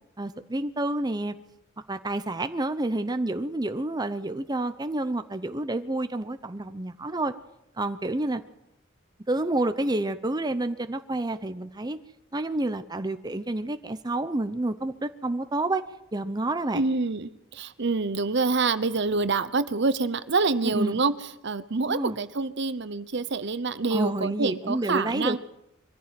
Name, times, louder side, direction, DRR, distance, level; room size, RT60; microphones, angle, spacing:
voice 1, 0.2-1.3 1.9-7.3 7.8-8.4 9.3-12.0 12.3-15.8 16.1-16.8 20.6-21.0 21.9-22.2 23.9-25.4, right 2 dB, 20° right, 9 dB, 0.8 m, -29 dB
voice 2, 16.7-21.1 21.4-25.4, right 3 dB, 60° right, 14 dB, 0.9 m, -26 dB
23.0 x 14.5 x 7.7 m, 0.84 s
head